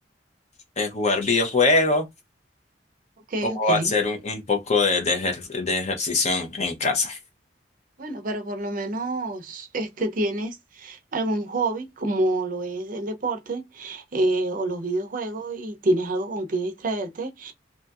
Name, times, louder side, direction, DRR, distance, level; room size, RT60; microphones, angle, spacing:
voice 1, 0.8-2.0 3.4-7.2, left 3 dB, 40° left, 0.7 m, -23 dB
voice 2, 3.3-3.9 8.0-17.5, right 2 dB, 50° right, 0.5 m, -27 dB
2.7 x 2.6 x 2.3 m
head